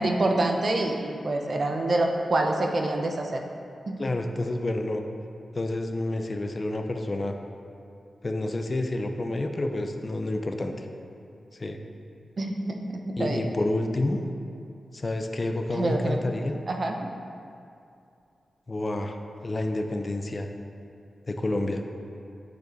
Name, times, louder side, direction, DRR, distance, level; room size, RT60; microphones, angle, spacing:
voice 1, 0.0-3.4 3.9-4.0 12.4-13.4 15.7-16.2 16.7-17.1, right 2 dB, 45° right, 3 dB, 0.7 m, -26 dB
voice 2, 4.0-5.0 5.5-7.3 8.2-10.7 11.6-11.8 13.2-14.2 14.9-16.6 18.7-19.2 19.4-20.5 21.3-21.9, left 2 dB, 30° left, 5 dB, 0.5 m, -29 dB
9.1 x 5.1 x 4.0 m, 2.5 s
wide cardioid pair, 110°, 0 cm